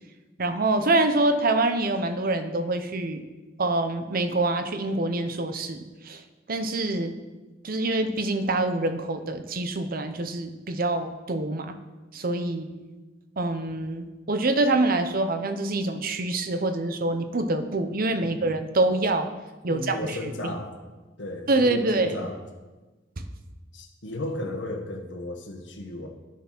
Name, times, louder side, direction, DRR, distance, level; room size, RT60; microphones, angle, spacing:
voice 1, 0.4-3.2 3.6-6.2 6.5-7.1 7.6-11.7 12.1-12.7 13.4-19.3 19.6-20.2 21.5-22.2, right 2 dB, 50° right, 9 dB, 0.8 m, -25 dB
voice 2, 18.2-18.5 19.7-20.7 21.2-22.4 23.7-26.1, left 1 dB, 75° left, 2 dB, 1.5 m, -34 dB
10.0 x 7.0 x 5.9 m, 1.2 s
head